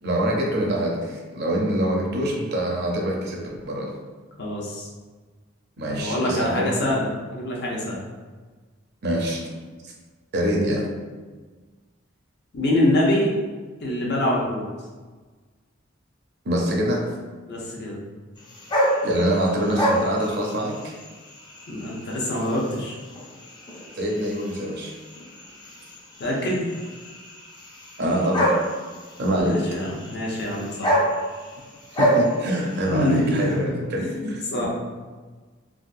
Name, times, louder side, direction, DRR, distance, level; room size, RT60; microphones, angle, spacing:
voice 1, 0.0-3.9 5.8-6.8 9.0-9.4 9.8-9.9 10.3-10.9 16.4-17.1 19.0-20.9 23.9-24.9 28.0-28.5 29.2-29.6 32.0-34.7, equal, 55° right, -1 dB, 0.6 m, -25 dB
voice 2, 4.4-4.9 5.9-8.0 12.5-13.3 13.8-14.7 17.5-18.0 21.7-23.0 26.2-26.6 29.4-31.0 32.9-34.7, left 1 dB, 55° left, -3 dB, 0.8 m, -25 dB
sound 1, 18.4-33.5, right 1 dB, 20° left, 0.5 m, -29 dB
3.5 x 2.4 x 2.5 m, 1.4 s
head